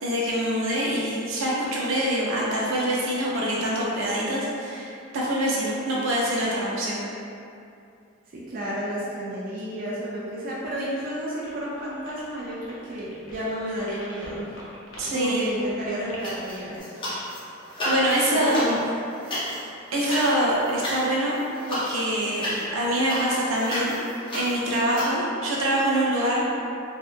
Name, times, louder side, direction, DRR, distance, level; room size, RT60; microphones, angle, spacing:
voice 1, 0.0-7.0 15.0-15.4 17.8-18.6 19.9-21.3 21.7-22.5 22.7-23.9 24.3-26.6, right 1 dB, 85° right, -5 dB, 0.6 m, -25 dB
voice 2, 8.3-14.5 15.1-16.8 18.3-18.8, equal, 45° right, -6 dB, 0.4 m, -31 dB
sound 1, 11.4-16.8, left 1 dB, 80° left, 0.6 m, -45 dB
sound 2, 16.2-17.4 17.7-25.1, equal, 25° left, 0.5 m, -32 dB
2.7 x 2.2 x 2.5 m, 2.5 s
head